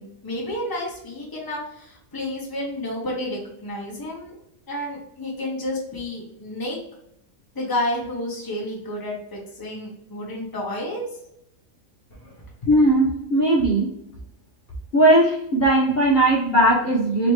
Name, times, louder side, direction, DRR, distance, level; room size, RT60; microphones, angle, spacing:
voice 1, 0.0-4.4 4.7-6.8 7.5-11.0, left 1 dB, 15° left, -3 dB, 1.0 m, -30 dB
voice 2, 12.6-13.9 14.9-17.3, right 1 dB, 45° left, -4 dB, 1.1 m, -18 dB
4.1 x 3.0 x 3.2 m, 0.78 s
omnidirectional pair, 1.5 m